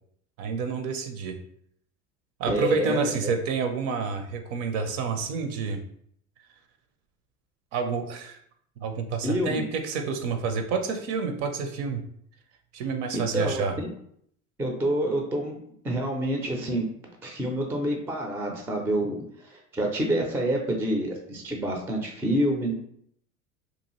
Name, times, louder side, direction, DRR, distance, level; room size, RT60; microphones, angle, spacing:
voice 1, 0.4-1.4 2.4-5.8 7.7-8.4 8.8-12.0 12.7-13.8, right 5 dB, 55° right, 6 dB, 0.6 m, -29 dB
voice 2, 2.5-3.3 9.2-9.7 13.1-13.6 14.6-15.6 15.8-16.8 17.2-19.2 19.4-22.7, right 1 dB, 5° right, 2 dB, 0.4 m, -27 dB
2.7 x 2.4 x 3.0 m, 0.68 s
hypercardioid pair, 85°, 42 cm